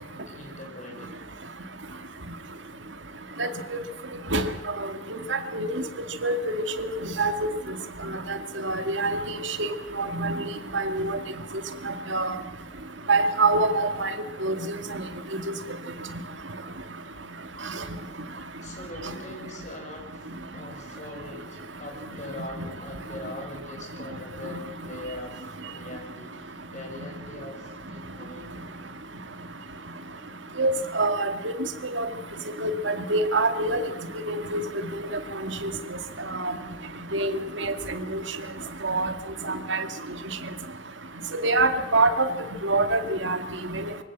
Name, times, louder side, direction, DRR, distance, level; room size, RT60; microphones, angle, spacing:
voice 1, 0.3-1.3 18.1-18.2 18.6-28.6, left 2 dB, 35° left, 2 dB, 6.4 m, -42 dB
voice 2, 5.3-5.7 6.2-6.4 6.8-6.9 7.2-7.5 8.6-9.7 10.0-10.3 10.7-11.2 12.1-12.3 13.1-14.1 14.4-14.6 30.6-31.5 31.9-32.1 32.6-33.8 34.3-34.6 35.4-35.7 36.4-36.5 37.1-37.7 38.8-39.1 39.7-39.8 41.4-42.3 42.6-43.4 43.7-43.8, right 2 dB, 65° right, 8 dB, 2.2 m, -24 dB
24.5 x 16.5 x 7.5 m, 1.0 s
head